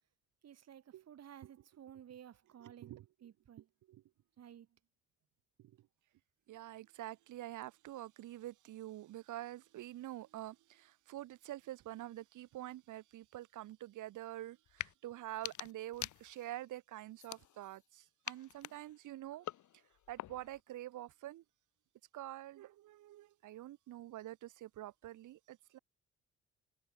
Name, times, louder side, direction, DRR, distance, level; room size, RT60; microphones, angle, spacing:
voice 1, 0.4-3.7 4.4-4.8, right 9 dB, 55° right, 2.1 m, -55 dB
voice 2, 2.6-3.0 3.9-4.0 5.6-5.7 6.5-19.5 20.1-21.4 22.1-25.8, right 14 dB, 80° right, 2.5 m, -47 dB
sound 1, 14.7-14.9 15.3-16.6 17.2-17.9 18.2-20.6, left 13 dB, 75° left, 2.5 m, -46 dB
cardioid pair, 90°, 30 cm